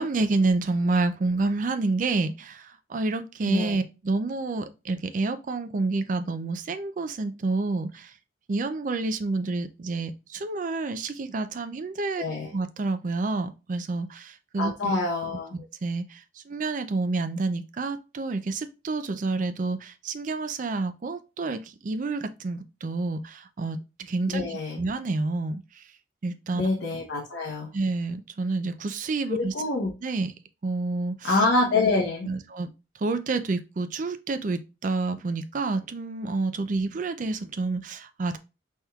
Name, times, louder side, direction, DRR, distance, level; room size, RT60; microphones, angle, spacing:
voice 1, 0.0-8.1 8.5-12.2 12.5-14.7 15.8-16.2 16.5-25.8 26.2-26.6 27.7-29.5 30.0-30.3 30.6-31.3 32.2-32.7 33.0-38.4, right 3 dB, 45° right, 0.4 m, -29 dB
voice 2, 3.5-3.8 12.2-12.5 14.6-15.6 24.3-24.8 26.5-27.7 29.3-29.9 31.2-32.3, left 2 dB, 75° left, 0.9 m, -26 dB
4.3 x 3.5 x 2.3 m
head